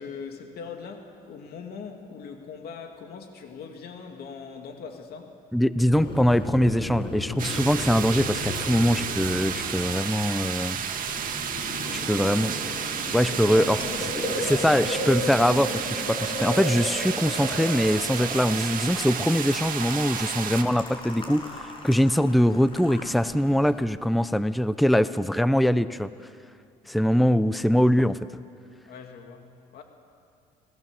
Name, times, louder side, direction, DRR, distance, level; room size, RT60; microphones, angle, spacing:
voice 1, 0.0-5.4 11.7-12.4 13.1-14.9 28.9-29.8, left 5 dB, 65° left, 4 dB, 2.6 m, -41 dB
voice 2, 5.5-10.8 11.9-12.5 13.1-13.8 14.5-26.1 26.9-28.4, equal, ahead, 14 dB, 0.6 m, -23 dB
Boiling, 5.9-23.8, left 1 dB, 30° left, 6.2 m, -35 dB
sound 1, 7.4-20.6, right 8 dB, 55° right, 2.0 m, -32 dB
29.5 x 19.5 x 7.6 m, 2.4 s
cardioid pair, 110°, 17 cm